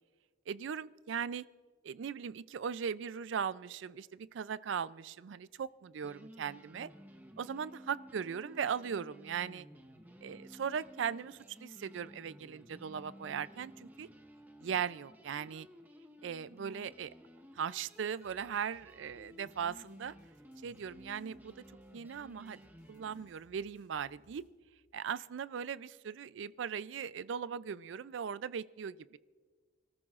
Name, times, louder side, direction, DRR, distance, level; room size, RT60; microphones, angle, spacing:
voice 1, 0.5-1.4 1.8-6.9 7.4-9.6 10.2-14.1 14.6-15.7 16.2-17.1 17.6-20.1 20.6-21.6 21.9-22.6 22.9-24.4 24.9-29.2, right 7 dB, 75° right, 18 dB, 0.4 m, -38 dB
sound 1, 5.6-5.7 6.0-23.3, equal, 10° right, 0.8 m, -55 dB
sound 2, 17.9-24.5, left 1 dB, 70° left, 3.8 m, -68 dB
29.0 x 14.0 x 2.4 m, 1.5 s
head